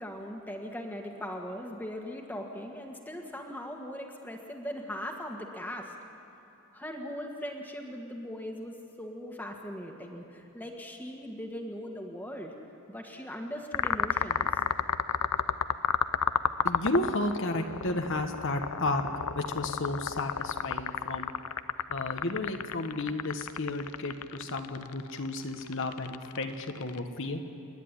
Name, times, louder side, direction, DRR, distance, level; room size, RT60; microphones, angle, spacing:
voice 1, 0.0-5.9 6.7-12.5 12.9-14.6, equal, 10° left, 1 dB, 1.8 m, -39 dB
sound 1, 13.7-27.0, left 7 dB, 85° left, 0.6 m, -31 dB
voice 2, 16.6-19.0 19.3-21.3 21.9-27.4, left 2 dB, 55° left, 5 dB, 1.2 m, -32 dB
28.5 x 11.0 x 9.9 m, 2.9 s
head